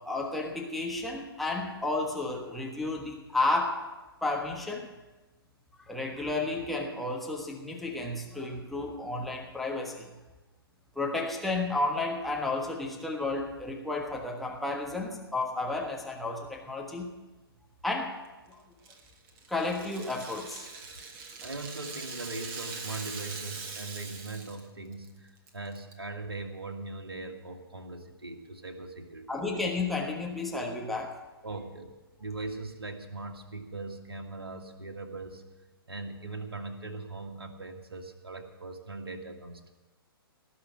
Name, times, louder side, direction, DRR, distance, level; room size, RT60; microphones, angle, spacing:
voice 1, 0.0-3.8 4.2-4.9 5.9-10.1 10.9-17.1 17.8-18.1 18.5-18.6 19.5-20.7 29.3-31.1, left 2 dB, ahead, 0 dB, 1.3 m, -32 dB
Rattle (instrument), 18.8-24.7 24.9-25.1 25.5-25.9, right 4 dB, 30° right, 1.6 m, -42 dB
voice 2, 21.4-29.4 31.4-31.9 32.2-35.4 35.9-39.7, right 3 dB, 70° right, 4 dB, 1.9 m, -40 dB
18.5 x 6.6 x 8.8 m, 1.2 s
figure-of-eight pair, 120°, 13 cm